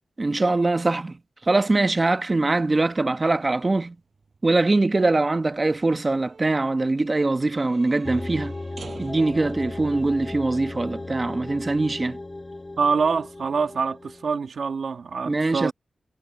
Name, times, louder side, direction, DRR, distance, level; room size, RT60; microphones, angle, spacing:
voice 1, 0.2-1.1 1.5-3.9 4.4-8.5 9.0-12.2 15.3-15.7, right 2 dB, 30° right, 1.2 m, -22 dB
sound 1, 3.4-11.4, right 4 dB, 55° right, 5.3 m, -50 dB
sound 2, 8.0-14.2, left 2 dB, 25° left, 2.4 m, -36 dB
voice 2, 12.8-15.7, right 5 dB, 75° right, 1.9 m, -25 dB
wide cardioid pair, 105°, 0 cm